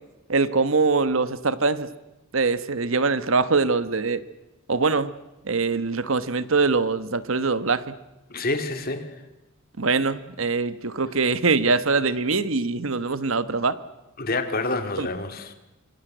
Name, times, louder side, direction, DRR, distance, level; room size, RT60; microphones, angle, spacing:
voice 1, 0.3-1.9 2.3-4.2 4.7-5.1 5.5-7.8 9.8-13.8 15.0-15.1, right 4 dB, 70° right, 1.2 m, -23 dB
voice 2, 8.3-9.1 14.2-15.5, left 2 dB, 45° left, 2.5 m, -27 dB
26.5 x 23.0 x 7.9 m
head